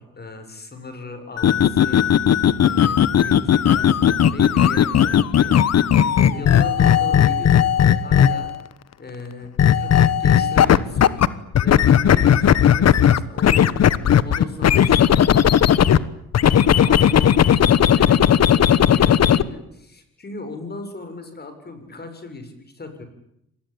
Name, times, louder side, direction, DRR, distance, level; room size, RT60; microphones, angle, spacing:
voice 1, 0.0-2.1 2.6-5.5 6.0-8.5 9.0-13.9 14.2-15.9 16.4-23.0, left 2 dB, 30° left, 8 dB, 7.5 m, -37 dB
sound 1, 1.4-8.6 9.6-11.3 11.5-16.0 16.3-19.4, left 9 dB, 55° left, 1.3 m, -16 dB
26.5 x 20.0 x 9.0 m, 0.79 s
cardioid pair, 90°, 30 cm